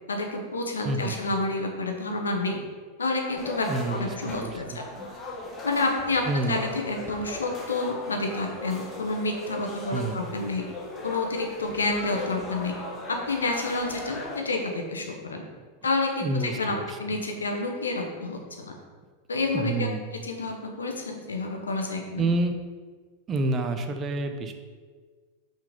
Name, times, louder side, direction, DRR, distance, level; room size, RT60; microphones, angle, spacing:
voice 1, 0.1-2.6 3.0-4.8 5.6-10.6 11.0-12.7 13.1-15.4 15.8-16.7 17.0-18.8 19.3-19.9 20.2-22.2, left 3 dB, 80° left, 3 dB, 1.1 m, -29 dB
voice 2, 0.8-1.2 3.7-4.1 4.4-4.8 6.2-6.6 9.9-10.2 15.6-15.7 16.2-17.2 19.5-20.0 22.2-22.5 23.3-24.5, right 2 dB, 30° right, 6 dB, 0.7 m, -28 dB
sound 1, 3.4-14.4, left 2 dB, 25° left, 1.3 m, -38 dB
5.9 x 4.4 x 5.3 m, 1.5 s
figure-of-eight pair, 90°, 0 cm